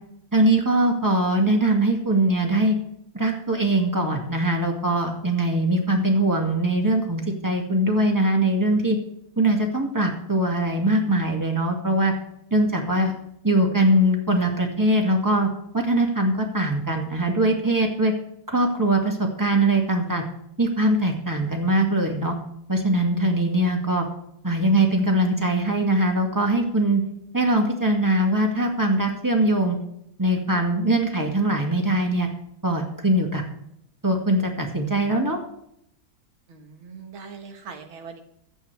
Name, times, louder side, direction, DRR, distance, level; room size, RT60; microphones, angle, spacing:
voice 1, 0.3-2.8 3.1-9.0 9.4-12.1 12.5-13.1 13.4-15.5 15.7-18.1 18.5-20.2 20.6-22.4 22.7-24.1 24.4-27.0 27.3-29.8 30.2-32.3 32.6-33.4 34.0-35.4, right 1 dB, 10° right, 1 dB, 2.1 m, -21 dB
voice 2, 36.5-38.2, right 5 dB, 80° right, 5 dB, 2.3 m, -41 dB
24.0 x 8.9 x 3.4 m, 0.74 s
omnidirectional pair, 2.2 m